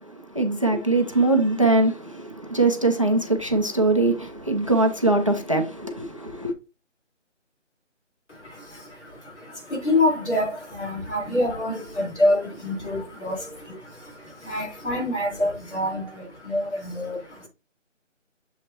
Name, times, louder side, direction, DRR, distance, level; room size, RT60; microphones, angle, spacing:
voice 1, 0.0-6.5, right 2 dB, 25° right, 0.7 m, -22 dB
voice 2, 8.3-17.5, left 1 dB, 65° left, 4.2 m, -27 dB
7.5 x 5.8 x 2.9 m
figure-of-eight pair, 170°, 38 cm